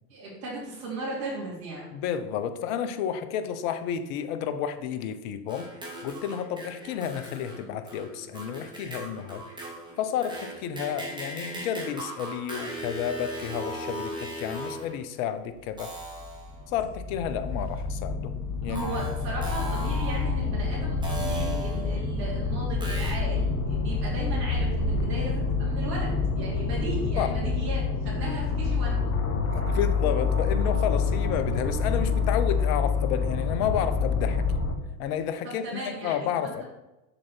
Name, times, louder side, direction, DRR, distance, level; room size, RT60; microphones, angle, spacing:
voice 1, 0.1-1.9 18.7-29.1 35.4-36.6, right 2 dB, 65° right, -6 dB, 3.3 m, -37 dB
voice 2, 1.9-5.7 6.0-9.4 10.0-15.9 16.7-18.9 27.2-27.4 28.3-28.4 29.5-34.5 35.0-36.6, left 9 dB, 55° left, 10 dB, 1.0 m, -31 dB
sound 1, 5.5-15.0 15.8-16.6 17.8-17.9 18.7-20.5 21.0-22.1 22.8-23.1, right 1 dB, 10° right, 2.6 m, -38 dB
sound 2, 16.0-34.7, left 4 dB, 35° left, 1.4 m, -27 dB
7.5 x 6.4 x 4.5 m, 0.99 s
hypercardioid pair, 100°, 48 cm